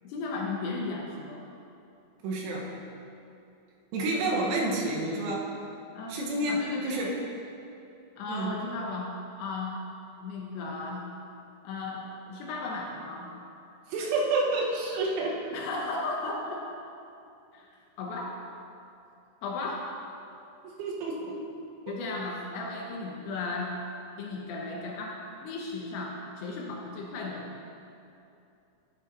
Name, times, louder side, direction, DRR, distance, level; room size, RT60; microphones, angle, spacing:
voice 1, 0.0-1.5 5.9-6.2 6.5-7.0 8.2-9.1 9.4-9.8 10.2-11.1 11.6-13.3 15.5-16.6 17.5-17.7 18.0-18.4 19.4-19.9 21.9-23.7 24.2-27.6, left 3 dB, 75° left, -1 dB, 2.6 m, -35 dB
voice 2, 2.2-2.7 3.9-5.5 6.1-7.1 8.3-8.5 13.9-15.4 20.8-21.4 21.9-22.0, right 2 dB, 80° right, -2 dB, 3.4 m, -29 dB
10.0 x 9.6 x 2.6 m, 2.7 s
omnidirectional pair, 5.6 m